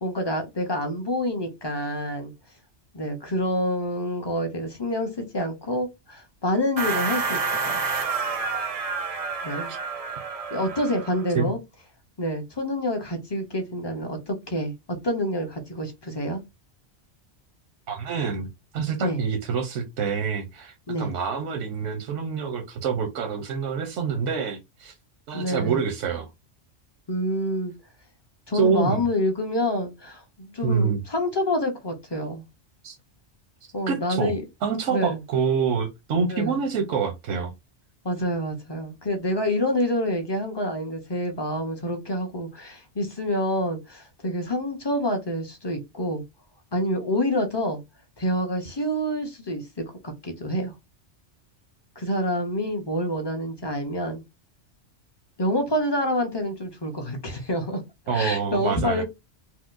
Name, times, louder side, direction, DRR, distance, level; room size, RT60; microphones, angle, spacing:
voice 1, 0.0-2.3 2.9-7.8 9.4-9.7 10.5-11.6 12.2-16.4 19.0-19.2 20.9-21.1 25.3-25.8 27.1-27.7 28.5-32.4 33.7-34.4 34.9-35.2 36.3-36.6 38.0-46.2 46.7-47.8 48.2-50.7 52.0-54.2 55.4-57.8 58.1-59.0, left 1 dB, 30° left, 0.5 m, -27 dB
sound 1, 6.8-11.3, right 4 dB, 50° right, 0.4 m, -29 dB
voice 2, 17.9-18.5 18.7-24.9 25.3-26.3 28.5-29.1 30.6-31.0 32.8-33.0 33.9-34.3 34.6-37.5 58.1-59.0, right 6 dB, 90° right, 1.0 m, -26 dB
4.4 x 2.0 x 2.4 m
omnidirectional pair, 1.2 m